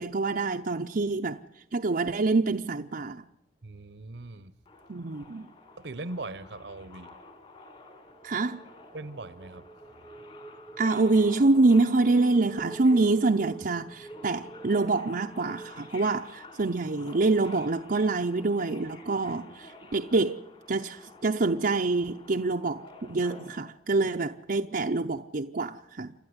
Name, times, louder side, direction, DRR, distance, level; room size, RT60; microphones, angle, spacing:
voice 1, 0.0-1.4 1.7-3.2 4.9-5.5 8.2-8.6 10.8-20.4 20.7-26.1, right 3 dB, 55° right, 0.7 m, -26 dB
voice 2, 3.6-4.6 5.8-7.2 8.9-9.7, right 2 dB, 70° right, 1.0 m, -40 dB
Subway metro underground, 4.7-23.6, left 3 dB, 35° left, 3.3 m, -50 dB
sound 1, 7.8-16.8, right 2 dB, 5° right, 0.7 m, -46 dB
28.5 x 12.0 x 9.7 m
head